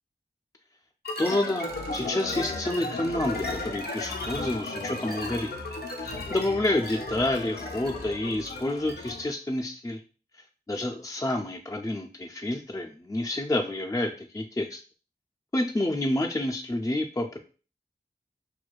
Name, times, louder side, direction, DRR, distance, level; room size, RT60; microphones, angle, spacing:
sound 1, 1.0-9.3, left 2 dB, 90° left, 0.6 m, -35 dB
voice 1, 1.2-5.5 6.0-10.0 10.7-14.8 15.5-17.4, left 1 dB, 20° left, 3 dB, 0.4 m, -29 dB
6.1 x 2.2 x 2.3 m, 0.37 s
wide cardioid pair, 40°, 16 cm